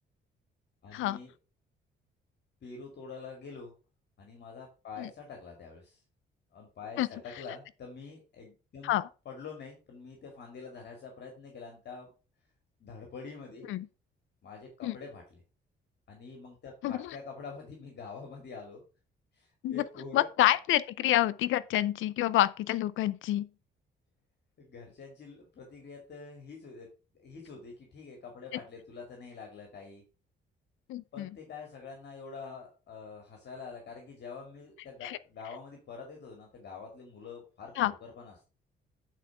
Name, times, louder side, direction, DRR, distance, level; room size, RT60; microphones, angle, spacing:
voice 1, 0.8-1.3 2.6-3.7 4.2-6.0 6.5-9.0 9.2-12.1 12.8-13.7 14.4-15.4 16.1-18.8 19.3-20.3 24.6-26.9 27.1-30.0 31.1-38.3, left 5 dB, 60° left, 2.3 m, -46 dB
voice 2, 20.1-23.5 30.9-31.3 35.0-35.2 37.8-37.9, left 14 dB, 80° left, 0.6 m, -27 dB
9.1 x 4.4 x 4.9 m
cardioid pair, 90°, 20 cm